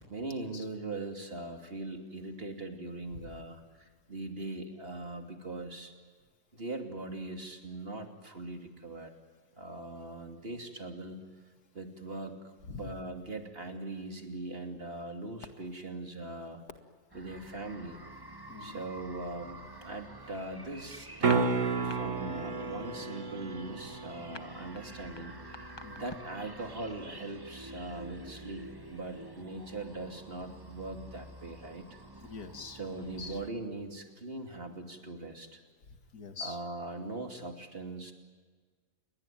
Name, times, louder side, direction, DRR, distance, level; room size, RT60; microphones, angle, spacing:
voice 1, 0.1-5.9 6.5-9.1 9.6-11.2 11.7-16.6 17.1-18.0 18.6-21.5 21.8-31.9 32.8-35.6 36.4-38.1, right 2 dB, 40° right, 4 dB, 3.0 m, -41 dB
sound 1, 17.1-33.5, right 1 dB, 15° right, 1.6 m, -49 dB
voice 2, 18.5-18.8 25.8-26.1 32.2-32.8 33.2-33.4 35.9-36.6, left 4 dB, 90° left, 7 dB, 2.5 m, -44 dB
sound 2, 21.2-22.0 22.3-22.6 22.9-26.4, left 2 dB, 20° left, 1.0 m, -48 dB
sound 3, 21.2-27.2 31.9-32.0, right 4 dB, 55° right, 1.9 m, -34 dB
29.0 x 22.5 x 9.3 m, 1.5 s
omnidirectional pair, 1.6 m